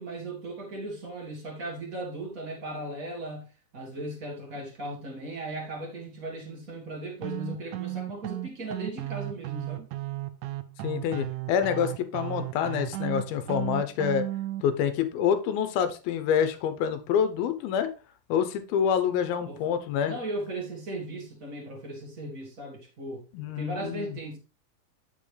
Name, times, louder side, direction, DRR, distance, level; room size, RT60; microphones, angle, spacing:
voice 1, 0.0-3.5 3.7-9.9 19.4-19.6 20.0-23.2 23.5-24.4, right 1 dB, 40° right, -1 dB, 1.3 m, -37 dB
sound 1, 7.2-14.6, right 16 dB, 85° right, 1.7 m, -34 dB
voice 2, 10.8-14.2 14.6-17.9 18.3-20.2 23.3-24.1, left 8 dB, 90° left, 10 dB, 2.7 m, -27 dB
8.7 x 6.1 x 3.3 m, 0.33 s
omnidirectional pair, 4.2 m